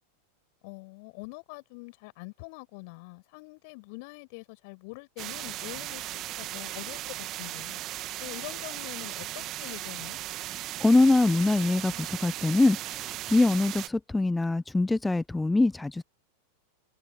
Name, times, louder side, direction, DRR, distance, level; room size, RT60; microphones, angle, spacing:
voice 1, 0.6-7.8 8.2-10.2, left 30 dB, 45° left, 6.4 m, -44 dB
sound 1, 5.2-13.9, right 15 dB, 35° right, 2.2 m, -37 dB
voice 2, 10.8-16.0, left 2 dB, 5° left, 0.8 m, -23 dB
figure-of-eight pair, 90°, 0 cm